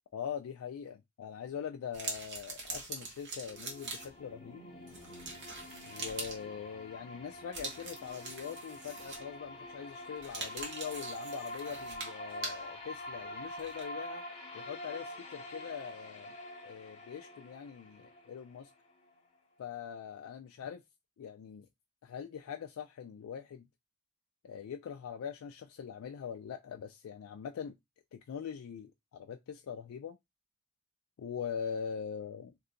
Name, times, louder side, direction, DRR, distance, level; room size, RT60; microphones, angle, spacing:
voice 1, 0.1-4.6 5.8-14.2 14.5-16.3 16.6-18.7 19.6-20.8 21.2-21.7 22.0-23.7 24.4-27.7 28.1-30.2 31.2-32.5, left 7 dB, 90° left, 0.3 m, -42 dB
sound 1, 1.9-4.3 4.9-6.4 7.5-9.4 10.2-12.7 13.6-13.8, right 3 dB, 55° right, 1.0 m, -43 dB
sound 2, 3.2-19.2, left 1 dB, 25° left, 0.7 m, -46 dB
2.7 x 2.2 x 3.7 m
head